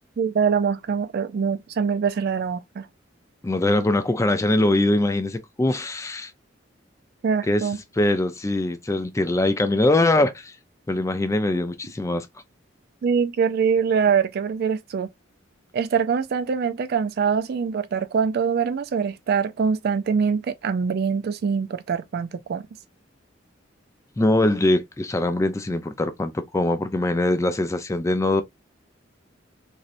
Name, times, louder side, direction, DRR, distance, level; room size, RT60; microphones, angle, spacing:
voice 1, 0.2-2.9 7.2-7.8 13.0-15.1 15.7-22.6, right 6 dB, 55° right, 0.3 m, -24 dB
voice 2, 3.4-6.3 7.5-7.7 8.0-10.5 10.9-12.3 24.2-28.4, left 2 dB, 15° left, 0.4 m, -22 dB
3.1 x 2.7 x 2.5 m
head